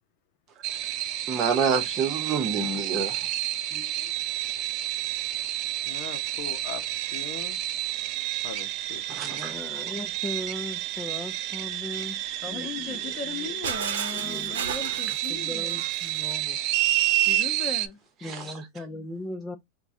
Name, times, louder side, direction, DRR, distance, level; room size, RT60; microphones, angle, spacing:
sound 1, 0.6-17.9, right 15 dB, 50° right, 0.4 m, -30 dB
voice 1, 1.3-3.2 3.7-4.1 9.1-9.5 18.2-18.4, right 5 dB, 35° right, 0.9 m, -28 dB
voice 2, 5.9-7.6 8.4-9.4, left 9 dB, 60° left, 0.6 m, -41 dB
voice 3, 9.1-13.6 14.1-14.6 15.0-16.6 18.2-19.6, left 2 dB, 15° left, 0.6 m, -38 dB
voice 4, 12.4-15.8 17.2-18.0, left 5 dB, 35° left, 0.9 m, -38 dB
Shatter, 13.6-16.4, right 7 dB, 90° right, 0.8 m, -34 dB
4.5 x 2.2 x 2.6 m
supercardioid pair, 125°, 0 cm